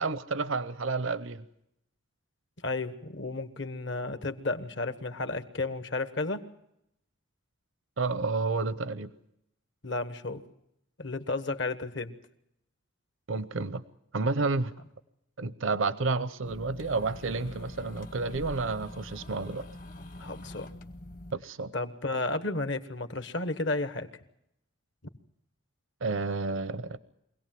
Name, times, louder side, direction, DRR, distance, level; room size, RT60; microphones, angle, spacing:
voice 1, 0.0-1.4 8.0-9.1 13.3-13.8 14.1-14.7 15.4-19.7 21.3-21.7 26.0-27.0, right 3 dB, 70° right, 15 dB, 0.8 m, -30 dB
voice 2, 2.6-6.4 9.8-10.4 11.0-12.1 20.2-20.7 21.7-24.1, left 2 dB, 55° left, 11 dB, 1.3 m, -32 dB
sound 1, 16.5-21.3, left 1 dB, 40° left, 1.1 m, -44 dB
24.5 x 17.5 x 7.6 m, 0.80 s
head